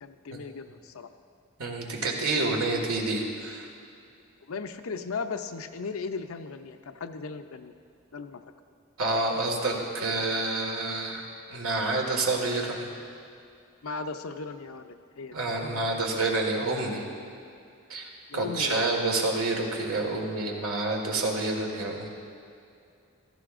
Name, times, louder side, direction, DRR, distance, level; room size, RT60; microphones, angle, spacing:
voice 1, 0.0-1.1 4.5-7.7 8.1-8.4 13.8-15.7 18.3-18.9, left 4 dB, 80° left, 7 dB, 0.6 m, -37 dB
voice 2, 1.6-3.7 9.0-11.2 11.5-12.9 15.3-17.0 17.9-22.1, right 2 dB, 85° right, 0 dB, 1.8 m, -28 dB
15.5 x 13.5 x 2.5 m, 2.5 s
head